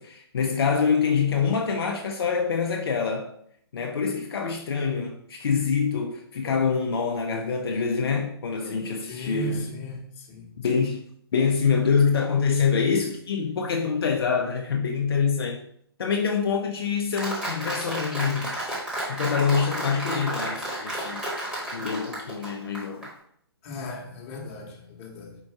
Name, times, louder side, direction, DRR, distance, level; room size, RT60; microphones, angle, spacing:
voice 1, 0.0-3.3 3.7-9.7 10.6-11.1 11.3-15.6 16.0-18.6 19.1-21.2 21.7-23.1, left 6 dB, 65° left, 0.5 m, -25 dB
voice 2, 9.1-10.8 23.6-25.4, left 1 dB, 30° left, 1.1 m, -36 dB
Applause, 17.2-23.1, right 1 dB, 5° right, 1.1 m, -32 dB
4.5 x 2.6 x 4.5 m
hypercardioid pair, 140°, 14 cm